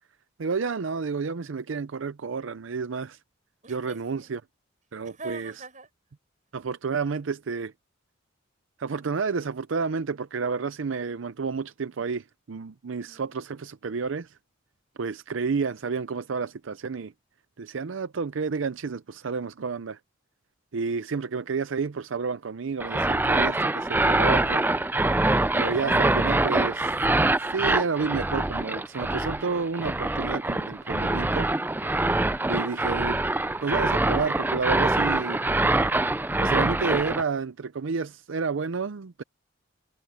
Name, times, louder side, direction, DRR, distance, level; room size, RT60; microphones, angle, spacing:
voice 1, 0.4-3.2 3.7-4.4 4.9-5.5 6.5-7.7 8.8-14.4 15.0-17.1 17.6-20.0 20.7-24.6 25.6-26.9 27.5-31.5 32.5-33.2 33.6-35.4 36.4-39.2, right 5 dB, 85° right, 0.5 m, -30 dB
voice 2, 3.6-4.4 5.0-5.9 13.0-13.2 31.8-32.4, right 3 dB, 40° right, 6.6 m, -44 dB
sound 1, 22.8-37.2, right 2 dB, 10° right, 0.5 m, -24 dB
head